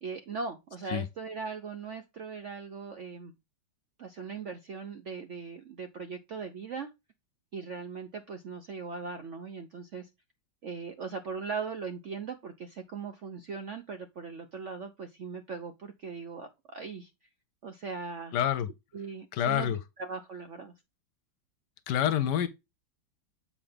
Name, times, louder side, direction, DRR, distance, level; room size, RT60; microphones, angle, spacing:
voice 1, 0.0-3.3 4.0-6.9 7.5-10.1 10.6-17.1 17.6-18.3 18.9-20.7, right 5 dB, 60° right, 0.7 m, -39 dB
voice 2, 18.3-18.7 19.3-19.8 21.9-22.5, left 10 dB, 70° left, 1.2 m, -27 dB
7.4 x 4.9 x 3.4 m
omnidirectional pair, 2.1 m